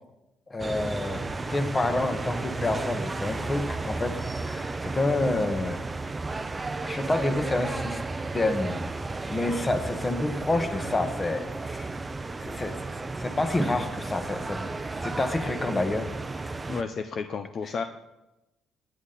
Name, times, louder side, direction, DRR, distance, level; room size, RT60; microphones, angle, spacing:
voice 1, 0.5-1.2 1.5-5.8 6.8-8.0 8.3-8.9 9.3-11.9 12.4-12.8 13.1-14.7 15.0-16.1, left 2 dB, 20° left, 7 dB, 1.4 m, -28 dB
sound 1, 0.6-16.8, right 3 dB, 20° right, 0.7 m, -33 dB
voice 2, 16.7-17.8, left 5 dB, 45° left, 7 dB, 0.7 m, -32 dB
19.5 x 10.0 x 4.0 m, 0.97 s
cardioid pair, 125°, 0 cm